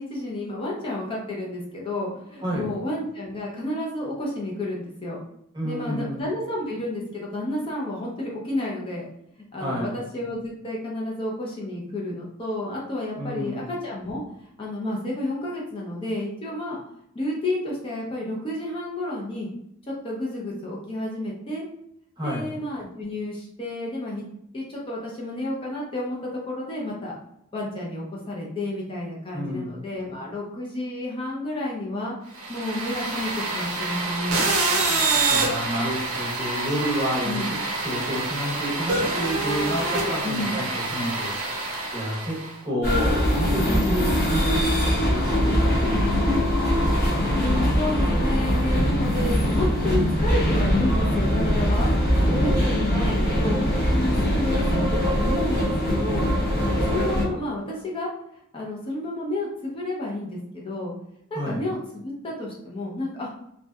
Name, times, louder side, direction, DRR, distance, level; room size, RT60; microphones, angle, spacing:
voice 1, 0.0-5.2 5.6-9.1 9.5-14.2 14.6-16.8 17.1-19.5 19.9-21.6 22.2-24.2 24.5-27.1 27.5-32.1 32.5-34.4 37.2-37.5 40.2-40.6 43.6-43.9 47.4-56.2 56.6-60.9 61.3-63.3, left 1 dB, 25° left, -4 dB, 0.4 m, -31 dB
voice 2, 2.4-2.7 5.5-6.3 9.6-10.0 13.2-13.6 22.2-22.5 29.3-29.7 35.3-37.4 37.8-41.3 41.9-46.5 52.3-52.8 61.3-61.6, equal, 20° right, -4 dB, 0.7 m, -30 dB
sound 1, 32.4-42.6, right 3 dB, 80° right, 0.6 m, -26 dB
sound 2, 42.8-57.2, equal, 50° left, 0.7 m, -22 dB
2.6 x 2.1 x 2.2 m, 0.75 s
head